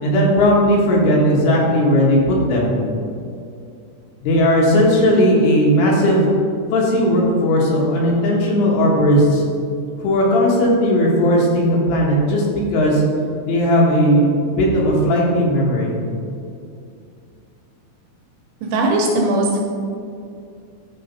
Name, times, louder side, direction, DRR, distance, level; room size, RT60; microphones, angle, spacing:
voice 1, 0.0-2.7 4.2-6.3 6.7-9.4 10.0-13.0 13.5-15.9, equal, 75° left, -3 dB, 3.9 m, -16 dB
voice 2, 18.6-19.6, right 2 dB, 75° right, -1 dB, 3.0 m, -18 dB
13.0 x 5.0 x 4.1 m, 2.4 s
omnidirectional pair, 5.8 m